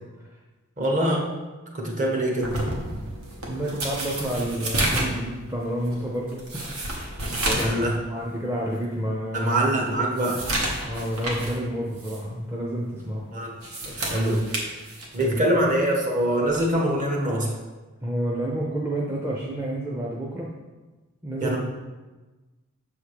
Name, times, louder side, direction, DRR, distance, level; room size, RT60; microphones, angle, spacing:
voice 1, 0.8-1.3 1.7-2.6 7.6-7.9 9.3-10.4 13.3-13.5 13.8-14.4 15.1-17.5 21.4-21.6, right 1 dB, 35° right, 0 dB, 1.0 m, -24 dB
sound 1, 2.4-7.8 8.2-8.3 8.8-8.9 9.4-11.6 12.0-12.2 13.4-15.4 16.5-16.7, right 1 dB, 75° right, 1.2 m, -30 dB
voice 2, 3.5-6.7 7.4-9.5 10.8-13.3 15.2-15.4 18.0-20.5 21.2-21.6, right 1 dB, 10° right, -4 dB, 0.5 m, -29 dB
6.4 x 3.5 x 4.8 m, 1.2 s
head